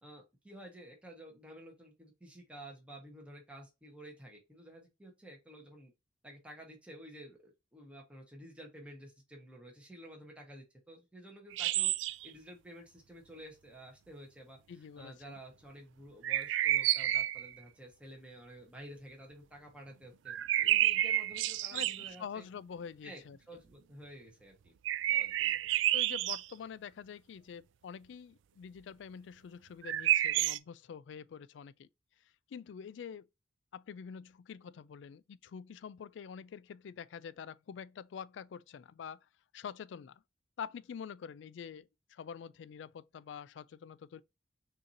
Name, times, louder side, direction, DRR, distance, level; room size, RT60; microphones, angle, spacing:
voice 1, 0.0-5.9 6.2-11.9 12.2-22.4 23.0-23.2 23.5-24.7 25.1-25.6, right 1 dB, 5° right, 1.3 m, -52 dB
sound 1, 11.5-12.3 16.2-17.5 20.3-22.1 24.9-26.5 29.8-30.6, right 13 dB, 90° right, 0.3 m, -30 dB
voice 2, 14.7-15.4 21.7-23.4 25.9-31.9 32.5-33.3 33.7-39.2 39.5-40.2 40.6-44.2, left 7 dB, 80° left, 0.3 m, -46 dB
6.3 x 2.8 x 2.7 m
head